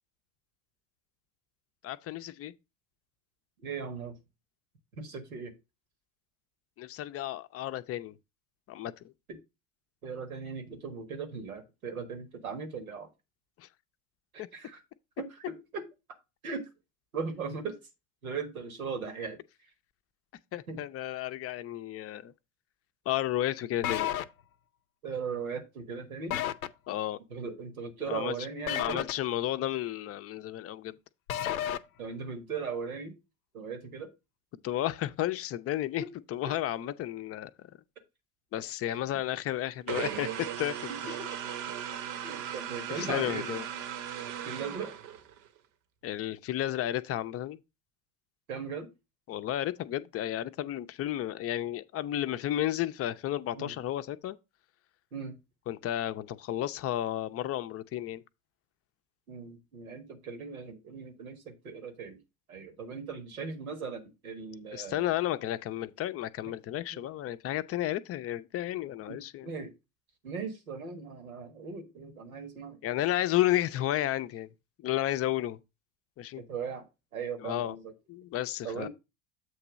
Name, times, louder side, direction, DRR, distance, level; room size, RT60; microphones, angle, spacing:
voice 1, 1.8-2.5 6.8-8.1 8.7-8.9 13.6-13.7 14.4-14.5 20.5-22.3 23.1-24.1 26.9-27.2 28.1-28.4 28.8-31.0 34.6-36.0 36.3-37.5 38.5-40.7 41.0-41.1 42.9-43.6 46.0-47.6 49.3-54.4 55.7-58.2 64.7-69.5 72.8-74.5 74.8-75.6 76.2-76.4 77.4-77.7 78.1-78.9, left 13 dB, 35° left, 0.5 m, -32 dB
voice 2, 3.6-4.1 4.9-5.5 9.3-9.4 10.0-13.1 14.3-14.8 15.2-15.9 16.4-16.7 17.1-17.8 18.2-19.4 20.7-20.8 25.0-26.4 27.3-29.0 32.0-33.2 33.5-34.1 36.0-36.1 36.5-36.6 38.9-39.0 40.1-40.2 40.9-41.4 42.2-43.6 44.4-44.9 48.5-48.9 53.5-53.7 55.1-55.4 59.3-62.2 62.5-65.1 66.9-67.0 69.1-69.7 70.2-72.8 76.4-76.9 77.1-77.9 78.6-78.9, right 5 dB, 85° right, 1.4 m, -38 dB
sound 1, 23.8-24.2 26.3-26.7 28.7-29.1 31.3-31.8, left 11 dB, 80° left, 0.6 m, -31 dB
sound 2, 39.9-45.5, right 10 dB, 60° right, 0.9 m, -37 dB
7.8 x 2.9 x 6.1 m
hypercardioid pair, 80°, 41 cm